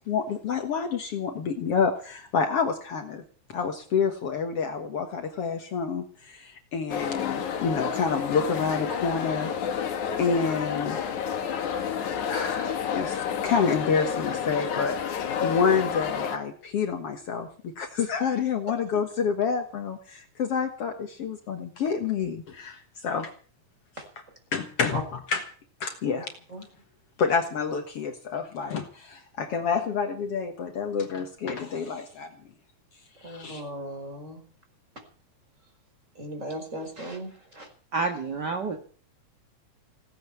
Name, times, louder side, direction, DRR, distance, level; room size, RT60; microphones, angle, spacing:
voice 1, 0.1-3.2 3.5-9.8 10.2-11.2 12.3-23.3 24.5-25.4 25.8-26.3 27.2-32.3 33.2-33.6, left 6 dB, 55° left, 6 dB, 2.2 m, -28 dB
sound 1, 6.9-16.4, left 8 dB, 75° left, 3.1 m, -30 dB
voice 2, 33.2-34.4 36.2-37.7, right 1 dB, 25° right, 5 dB, 5.0 m, -37 dB
voice 3, 37.9-38.8, right 4 dB, 40° right, 6 dB, 1.8 m, -28 dB
17.5 x 9.2 x 8.4 m, 0.43 s
omnidirectional pair, 3.5 m